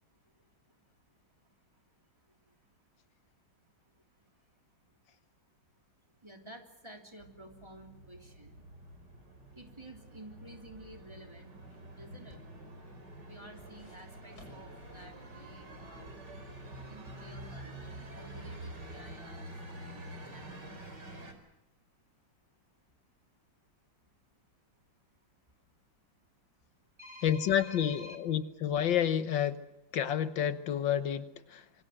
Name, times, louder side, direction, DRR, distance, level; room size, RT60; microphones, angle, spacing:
voice 1, 6.2-8.6 9.5-11.6 11.9-12.4 13.2-16.2 16.8-17.7 18.1-19.5 19.7-20.7 27.0-28.2, equal, 15° right, 3 dB, 3.3 m, -52 dB
sound 1, 7.2-21.3, right 1 dB, 65° right, 4.8 m, -48 dB
sound 2, 10.5-15.2 15.6-15.7, equal, 55° left, 7.2 m, -60 dB
voice 2, 27.2-29.6 29.9-31.8, left 9 dB, 80° left, 12 dB, 1.8 m, -30 dB
26.5 x 25.0 x 6.5 m, 0.88 s
omnidirectional pair, 2.0 m